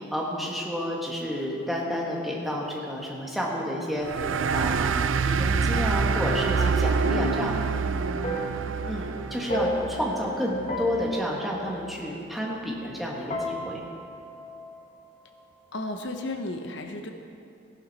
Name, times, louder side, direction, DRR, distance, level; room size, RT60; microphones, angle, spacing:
voice 1, 0.1-4.1 4.5-7.5 8.9-13.8, equal, ahead, -3 dB, 1.5 m, -30 dB
sound 1, 4.0-11.1, right 5 dB, 80° right, 0.4 m, -27 dB
sound 2, 4.1-13.0 13.3-15.3, equal, 35° left, 1.3 m, -36 dB
voice 2, 7.0-8.9 15.7-17.1, left 2 dB, 65° left, 5 dB, 0.9 m, -35 dB
15.5 x 11.5 x 4.2 m, 2.6 s
head